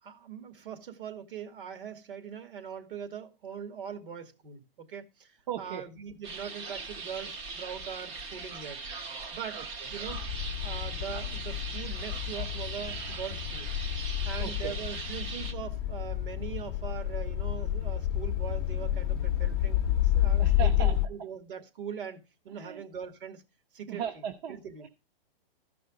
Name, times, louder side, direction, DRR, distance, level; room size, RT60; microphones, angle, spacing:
voice 1, 0.0-8.8 9.3-9.6 9.9-10.2 10.6-13.7 14.2-23.4 23.7-24.0 24.5-24.9, right 7 dB, 65° right, 2.4 m, -41 dB
voice 2, 5.5-5.8 9.6-9.7 14.4-14.7 20.4-21.0 22.5-22.8 23.9-24.9, right 8 dB, 45° right, 1.1 m, -37 dB
sound 1, 6.2-15.5, right 4 dB, 15° right, 0.6 m, -40 dB
sound 2, 10.1-21.1, left 11 dB, 25° left, 0.7 m, -30 dB
14.0 x 5.5 x 5.1 m
hypercardioid pair, 160°, 29 cm